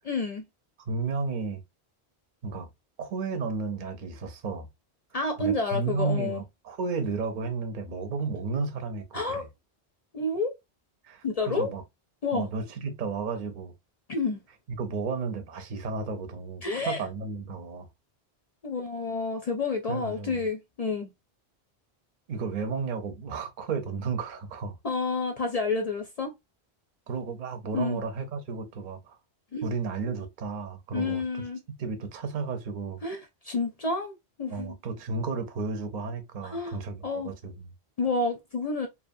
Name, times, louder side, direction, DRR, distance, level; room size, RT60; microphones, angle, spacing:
voice 1, 0.0-0.4 5.1-6.4 9.1-9.5 10.1-10.5 11.2-11.7 12.2-12.5 14.1-14.4 16.6-17.0 18.6-21.1 24.8-26.3 27.7-28.0 29.5-29.7 30.9-31.6 33.0-34.7 36.4-37.3 38.0-38.9, left 3 dB, 50° left, 0.5 m, -29 dB
voice 2, 0.9-1.6 2.4-2.7 3.0-4.7 5.4-9.5 11.0-11.8 12.3-13.7 14.8-17.9 19.9-20.4 22.3-24.8 27.1-29.2 29.6-31.4 31.8-33.0 34.5-37.7, right 4 dB, 50° right, 0.7 m, -33 dB
2.8 x 2.2 x 2.5 m
omnidirectional pair, 1.1 m